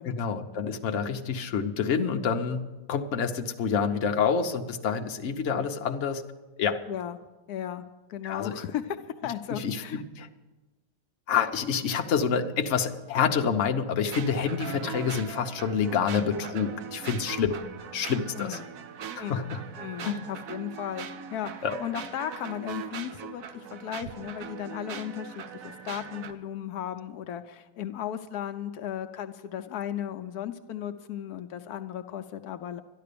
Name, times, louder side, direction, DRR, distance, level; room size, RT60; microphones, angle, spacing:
voice 1, 0.0-6.2 6.6-6.8 8.2-8.6 9.5-10.3 11.3-17.6 17.9-18.6 19.2-19.6 20.0-20.3 21.6-21.8, left 6 dB, 55° left, 5 dB, 1.1 m, -28 dB
voice 2, 6.9-7.2 7.5-9.0 9.2-10.0 18.4-18.7 19.2-19.5 19.8-32.8, left 10 dB, 85° left, 8 dB, 1.2 m, -36 dB
sound 1, 14.1-26.3, right 8 dB, 70° right, 1.2 m, -40 dB
12.5 x 11.0 x 6.8 m, 1.1 s
omnidirectional pair, 1.6 m